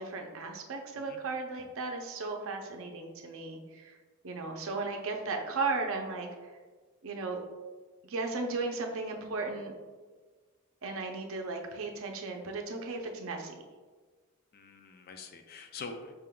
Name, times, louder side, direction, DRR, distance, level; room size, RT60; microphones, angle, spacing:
voice 1, 0.0-4.0 4.2-6.5 7.0-7.4 8.0-9.7 10.8-13.5, right 3 dB, 65° right, 3 dB, 0.6 m, -36 dB
voice 2, 14.5-16.1, left 4 dB, 45° left, 5 dB, 0.4 m, -45 dB
5.4 x 3.7 x 2.2 m, 1.4 s
head